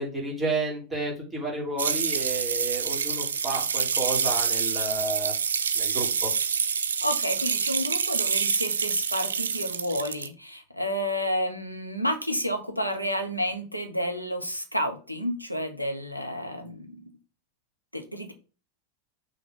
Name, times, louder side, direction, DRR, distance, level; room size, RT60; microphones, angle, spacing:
voice 1, 0.0-5.3 5.7-6.3, right 2 dB, 10° right, -3 dB, 3.3 m, -31 dB
sound 1, 1.8-10.3, right 6 dB, 70° right, 0.5 m, -27 dB
voice 2, 7.0-17.0 17.9-18.3, equal, 90° left, 5 dB, 1.1 m, -30 dB
6.0 x 3.6 x 5.2 m, 0.35 s
figure-of-eight pair, 90°, 0 cm